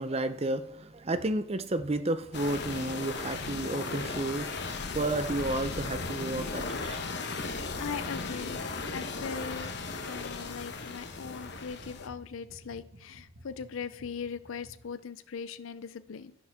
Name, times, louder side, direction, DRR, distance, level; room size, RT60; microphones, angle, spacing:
voice 1, 0.0-7.0, right 2 dB, 30° right, 11 dB, 0.6 m, -32 dB
sound 1, 1.1-1.3 1.6-14.9, right 1 dB, 85° right, 1.8 m, -53 dB
sound 2, 2.3-12.1, left 3 dB, 55° left, 1.1 m, -36 dB
voice 2, 7.8-9.7 10.0-16.4, left 6 dB, 70° left, 13 dB, 0.5 m, -40 dB
11.0 x 11.0 x 3.6 m, 0.75 s
head